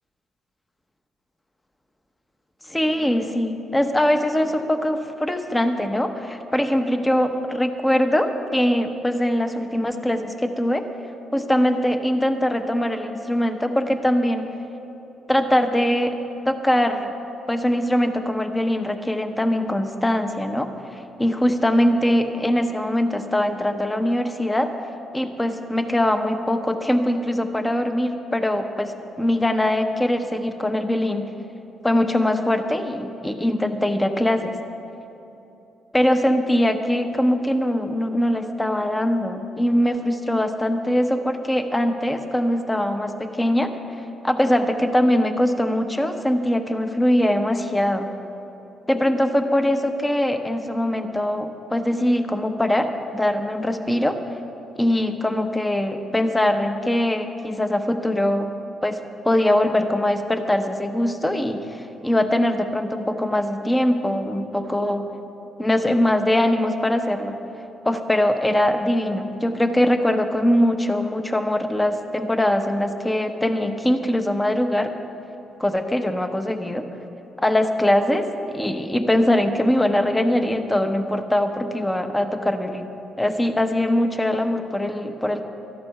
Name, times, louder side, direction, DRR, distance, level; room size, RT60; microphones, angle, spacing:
voice 1, 2.7-10.8 11.3-14.5 15.3-16.2 16.4-17.1 17.5-24.7 25.1-28.9 29.2-31.3 31.8-34.6 35.9-43.7 44.2-48.1 48.9-52.9 53.1-54.2 54.8-58.5 58.8-59.0 59.2-65.1 65.6-67.3 67.8-74.9 75.6-76.9 77.4-82.9 83.2-85.4, left 1 dB, 10° left, 7 dB, 0.9 m, -22 dB
13.0 x 11.0 x 5.9 m, 3.0 s
cardioid pair, 90°, 0 cm